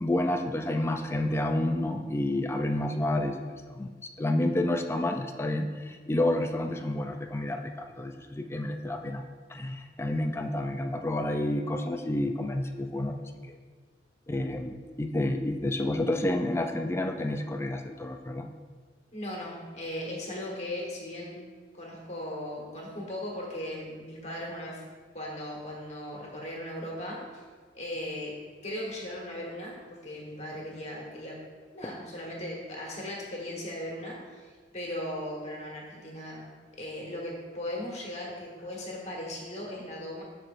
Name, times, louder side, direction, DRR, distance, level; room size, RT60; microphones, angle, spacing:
voice 1, 0.0-3.9 4.2-9.2 9.5-13.2 13.5-13.6 14.3-18.5, left 1 dB, 15° left, 5 dB, 0.4 m, -29 dB
voice 2, 19.1-21.4 21.7-24.8 25.1-27.4 27.7-28.3 28.6-31.4 31.7-36.5 36.8-40.2, left 1 dB, 40° left, -3 dB, 1.4 m, -38 dB
13.0 x 4.4 x 2.6 m, 1.6 s
head